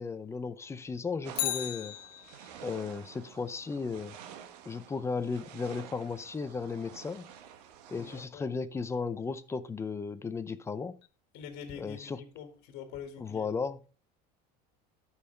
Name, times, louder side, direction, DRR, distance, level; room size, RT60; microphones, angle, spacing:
voice 1, 0.0-2.0 2.6-4.2 4.7-7.3 7.9-11.0 11.8-12.2 13.2-13.8, left 5 dB, 15° left, 0.5 m, -35 dB
sound 1, 1.2-8.2, right 9 dB, 90° right, 1.2 m, -50 dB
Bicycle, 1.3-2.7 11.0-11.1, left 15 dB, 80° left, 0.8 m, -36 dB
voice 2, 8.0-8.6 11.3-13.5, left 7 dB, 55° left, 1.9 m, -45 dB
13.0 x 5.7 x 3.3 m
cardioid pair, 145°, 20 cm